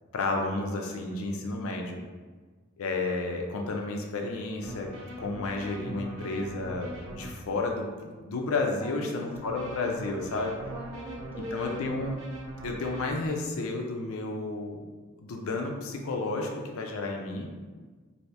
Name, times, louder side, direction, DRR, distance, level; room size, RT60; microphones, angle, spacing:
voice 1, 0.1-2.0 2.8-4.9 5.2-7.9 8.2-10.6 11.4-12.2 12.6-14.8 15.2-17.5, left 3 dB, 70° left, 2 dB, 0.5 m, -31 dB
sound 1, 4.6-7.3 9.3-13.3, right 2 dB, 65° right, 0.8 m, -41 dB
voice 2, 8.8-9.3 10.7-11.7, left 1 dB, 10° right, -2 dB, 0.3 m, -40 dB
2.7 x 2.7 x 3.2 m, 1.4 s
head